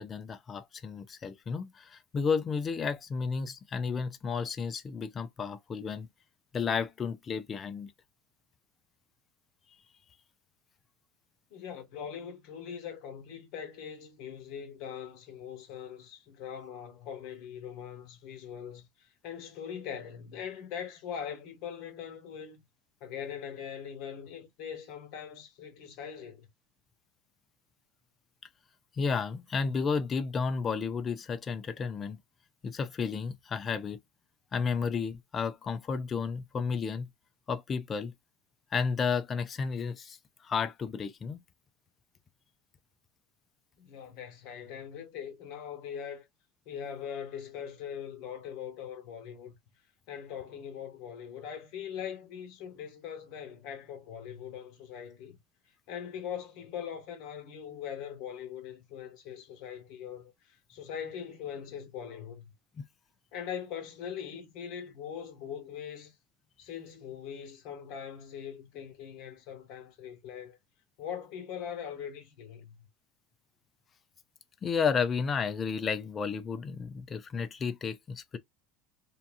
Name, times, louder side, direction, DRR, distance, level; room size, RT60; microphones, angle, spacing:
voice 1, 0.0-6.1 6.5-7.9 29.0-32.2 32.6-34.0 34.5-37.1 37.5-38.1 38.7-40.2 40.4-41.4 62.8-62.9 74.6-78.4, left 5 dB, 25° left, 0.4 m, -32 dB
voice 2, 11.5-22.6 23.0-26.5 43.8-46.3 46.7-49.5 50.1-55.4 55.9-62.5 63.3-66.1 66.6-70.6 71.0-72.8, left 8 dB, 55° left, 1.2 m, -41 dB
2.8 x 2.3 x 2.5 m
supercardioid pair, 155°, 0 cm